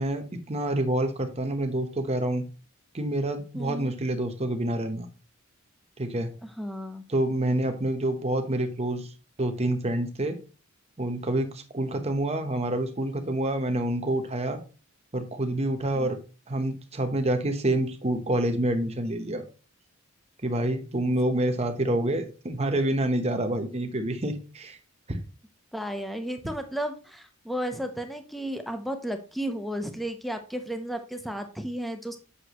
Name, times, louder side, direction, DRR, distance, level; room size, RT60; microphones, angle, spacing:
voice 1, 0.0-2.4 2.9-5.1 6.0-6.3 7.1-9.1 9.4-10.4 11.0-14.6 15.1-16.2 16.5-19.4 20.4-24.8 25.1-25.2, right 1 dB, 30° right, 6 dB, 1.0 m, -27 dB
voice 2, 3.5-3.9 6.6-7.0 15.9-16.1 25.7-32.2, equal, ahead, 7 dB, 0.7 m, -33 dB
8.1 x 6.1 x 3.0 m, 0.35 s
head